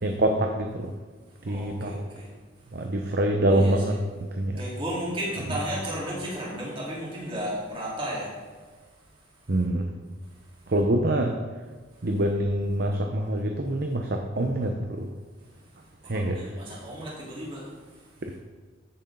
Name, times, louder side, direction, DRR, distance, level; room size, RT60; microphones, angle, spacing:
voice 1, 0.0-0.9 1.4-2.1 2.7-4.6 5.5-5.6 9.5-9.9 10.7-11.4 12.0-15.1 16.1-16.6 18.2-18.4, right 1 dB, 50° right, 4 dB, 0.8 m, -25 dB
voice 2, 1.4-2.3 3.5-3.7 4.6-8.3 16.1-17.7, equal, 25° right, -6 dB, 3.7 m, -33 dB
14.0 x 8.6 x 4.0 m, 1.4 s
head